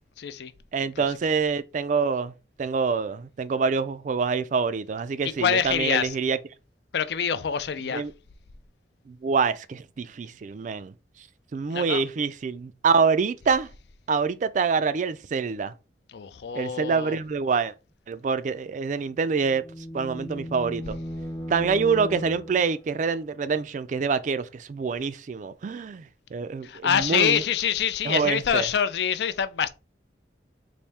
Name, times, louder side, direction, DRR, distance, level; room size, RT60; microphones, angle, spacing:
voice 1, 0.2-0.5 1.0-1.1 5.4-6.1 6.9-8.0 11.7-12.0 16.1-17.2 26.6-29.7, left 8 dB, 70° left, 0.4 m, -25 dB
voice 2, 0.7-2.3 2.6-6.4 7.9-8.1 9.1-10.9 11.5-13.7 14.1-15.7 16.5-17.7 18.1-19.6 19.9-21.0 21.5-27.4 28.0-28.7, right 5 dB, 45° right, 0.3 m, -26 dB
sound 1, 19.0-23.0, equal, 25° left, 0.6 m, -37 dB
4.2 x 2.6 x 3.4 m
head